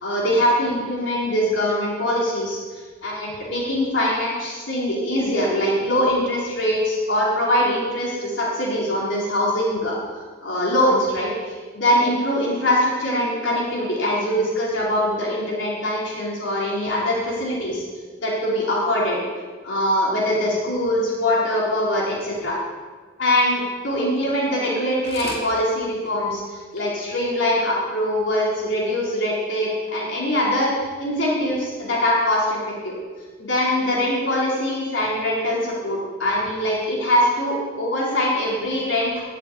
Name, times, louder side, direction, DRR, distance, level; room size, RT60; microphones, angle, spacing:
voice 1, 0.0-2.6 3.0-10.0 10.4-17.8 18.2-19.2 19.6-22.6 23.2-30.7 31.0-33.0 33.4-39.2, left 1 dB, 80° left, -5 dB, 3.9 m, -22 dB
sound 1, 24.6-24.8 25.0-25.5 26.1-26.2 26.5-26.6 26.7-26.8 27.5-27.6, left 2 dB, 50° left, 2.1 m, -34 dB
12.5 x 7.5 x 8.3 m, 1.5 s
head